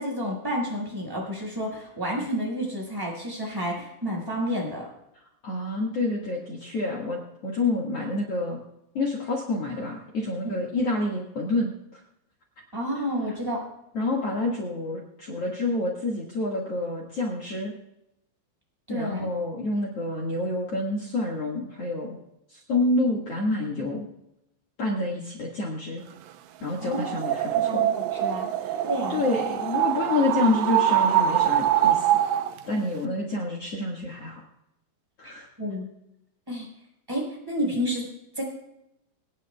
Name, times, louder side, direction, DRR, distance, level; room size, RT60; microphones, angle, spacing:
voice 1, 0.0-4.9 10.4-10.5 12.7-13.6 18.9-19.3 26.8-27.0 27.6-28.5 28.8-29.2 35.2-35.9 36.5-36.7 37.1-38.1 38.4-38.5, equal, 5° right, -1 dB, 4.3 m, -30 dB
voice 2, 5.4-8.6 8.9-12.0 13.9-17.7 18.9-22.2 22.5-24.1 24.8-26.0 26.6-27.8 28.6-28.8 29.1-32.2 32.7-34.4 35.2-35.5, left 2 dB, 90° left, -2 dB, 1.3 m, -28 dB
sound 1, 26.8-32.6, right 11 dB, 80° right, 3.0 m, -24 dB
26.5 x 9.9 x 2.3 m, 0.83 s
omnidirectional pair, 6.0 m